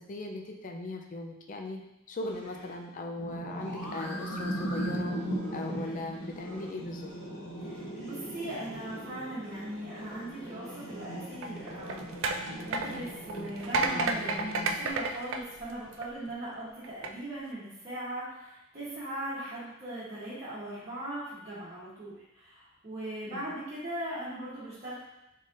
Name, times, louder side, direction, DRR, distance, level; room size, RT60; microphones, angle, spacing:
voice 1, 0.1-1.8 2.1-5.1 5.5-7.1 23.3-23.5, left 2 dB, 40° left, 2 dB, 0.4 m, -39 dB
sound 1, 2.2-12.2, left 1 dB, 5° left, 1.3 m, -48 dB
sound 2, 3.2-14.9, right 1 dB, 75° left, 1.1 m, -39 dB
voice 2, 7.6-25.0, right 1 dB, 35° right, -13 dB, 1.1 m, -39 dB
sound 3, 11.3-16.3 16.8-17.1, right 3 dB, 80° right, 0.3 m, -32 dB
4.0 x 3.5 x 2.5 m, 0.89 s
head